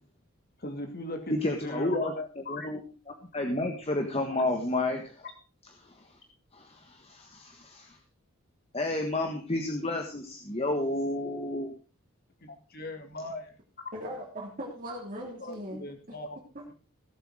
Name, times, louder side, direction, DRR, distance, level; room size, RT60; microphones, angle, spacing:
voice 1, 0.6-2.7 12.4-13.5 15.4-16.4, left 1 dB, 45° left, 5 dB, 2.6 m, -38 dB
voice 2, 1.3-2.1 2.5-2.8 3.3-5.3 5.8-6.2 6.5-8.0 8.7-11.7, left 2 dB, 25° left, 4 dB, 1.5 m, -31 dB
voice 3, 13.9-15.9 16.5-16.6, equal, 40° right, -3 dB, 3.3 m, -39 dB
18.0 x 8.1 x 5.0 m, 0.35 s
head